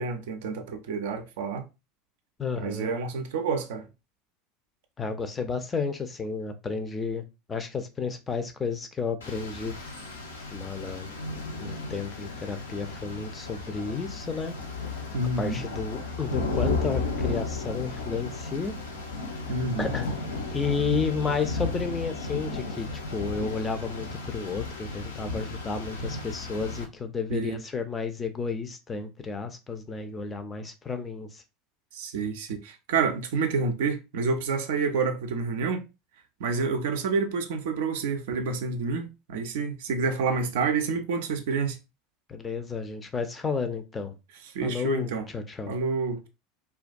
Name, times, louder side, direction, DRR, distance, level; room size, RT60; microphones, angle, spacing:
voice 1, 0.0-1.7 2.5-3.9 15.1-15.6 19.5-19.9 27.3-27.6 31.9-35.9 36.4-41.8 44.4-45.3 45.7-46.3, right 4 dB, 65° right, 0.4 m, -28 dB
voice 2, 2.4-2.9 5.0-7.2 7.5-9.8 10.5-11.2 11.6-14.5 15.4-18.7 19.8-20.1 20.5-31.4 42.3-44.2 44.6-45.7, left 5 dB, 25° left, 0.4 m, -32 dB
Rain, 9.2-26.8, left 3 dB, 80° left, 0.5 m, -34 dB
2.2 x 2.2 x 2.5 m
figure-of-eight pair, 75°, 0 cm